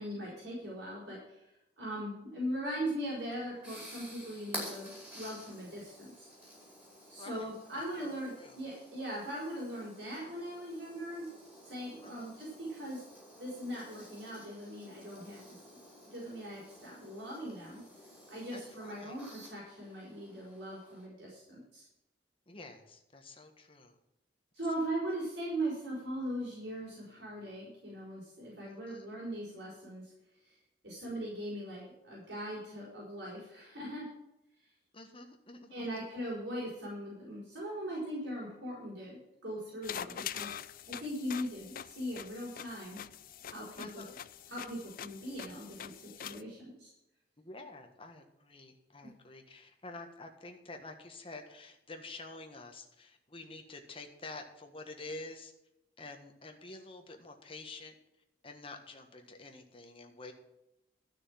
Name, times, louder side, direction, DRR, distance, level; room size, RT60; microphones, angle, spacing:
voice 1, 0.0-1.5 1.8-4.9 5.2-6.3 7.1-11.3 11.6-13.0 13.4-15.6 16.1-17.8 18.3-21.9 24.5-30.1 30.4-30.6 30.8-34.1 35.7-40.5 40.9-43.0 43.5-44.0 44.5-46.9, right 1 dB, 65° right, -5 dB, 5.2 m, -40 dB
sound 1, 3.1-21.0, equal, 10° right, 5.1 m, -51 dB
voice 2, 7.2-8.6 12.0-12.4 18.5-19.2 22.5-23.9 28.6-29.1 34.9-36.1 43.8-44.2 47.4-55.5 56.0-57.9 58.4-60.3, left 2 dB, 30° left, 4 dB, 1.6 m, -49 dB
sound 2, 39.8-46.4, left 9 dB, 50° left, 0.5 m, -44 dB
13.0 x 6.3 x 7.5 m, 0.90 s
head